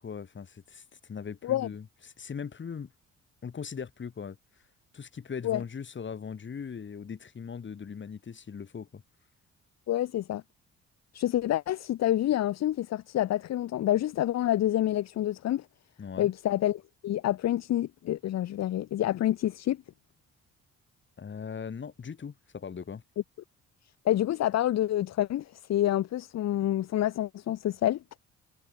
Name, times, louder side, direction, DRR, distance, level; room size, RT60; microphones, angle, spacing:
voice 1, 0.0-2.9 3.4-4.4 4.9-9.0 16.0-16.3 21.2-23.0, left 6 dB, 40° left, 2.5 m, -39 dB
voice 2, 9.9-10.4 11.1-15.6 16.2-19.8 24.0-28.0, left 13 dB, 60° left, 0.8 m, -28 dB
cardioid pair, 90°, 30 cm